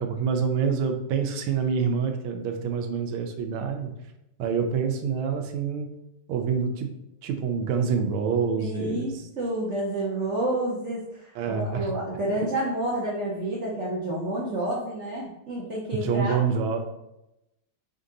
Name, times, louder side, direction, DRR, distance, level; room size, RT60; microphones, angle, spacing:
voice 1, 0.0-3.9 4.4-5.9 6.3-6.9 7.2-9.1 11.3-11.9 15.9-16.8, right 6 dB, 85° right, 5 dB, 1.4 m, -26 dB
voice 2, 8.6-16.4, right 1 dB, 60° right, -6 dB, 0.7 m, -29 dB
4.5 x 2.7 x 3.7 m, 0.87 s
omnidirectional pair, 2.3 m